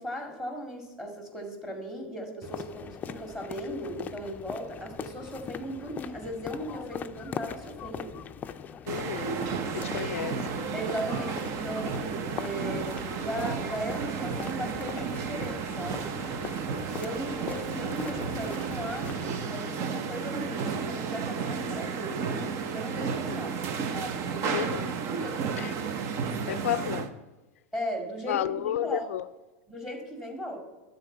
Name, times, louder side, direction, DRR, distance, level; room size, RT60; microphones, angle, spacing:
voice 1, 0.0-8.2 10.7-16.2 16.9-23.5 23.9-25.7 27.7-29.1 29.7-30.6, equal, 5° right, 2.1 m, -37 dB
sound 1, 2.4-19.4, left 7 dB, 25° left, 0.4 m, -41 dB
voice 2, 8.9-9.4 9.7-10.8 23.3-23.5 24.5-24.9 25.6-25.7 26.5-27.1 28.3-29.3, left 12 dB, 85° left, 0.4 m, -32 dB
sound 2, 8.9-27.1, right 6 dB, 45° right, 0.8 m, -33 dB
11.5 x 4.0 x 7.8 m
supercardioid pair, 125°, 7 cm